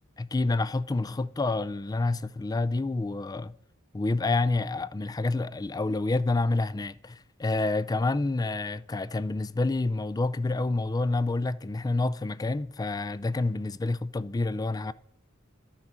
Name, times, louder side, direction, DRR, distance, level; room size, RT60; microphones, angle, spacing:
voice 1, 0.2-3.5 3.9-14.9, left 2 dB, 20° left, 0.4 m, -28 dB
12.0 x 6.3 x 7.3 m
head